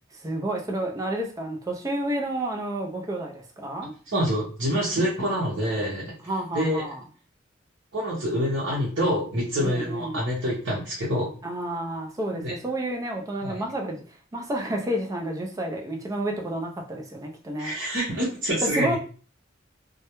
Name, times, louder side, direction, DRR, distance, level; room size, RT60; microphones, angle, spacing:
voice 1, 0.1-3.9 6.2-7.0 9.6-10.2 11.4-17.8 18.6-19.0, right 1 dB, 20° right, 0.4 m, -30 dB
voice 2, 4.1-6.1 6.5-6.8 7.9-11.3 12.3-12.5 13.4-13.5 17.6-19.0, equal, 70° right, 0.8 m, -26 dB
2.3 x 2.1 x 2.9 m
head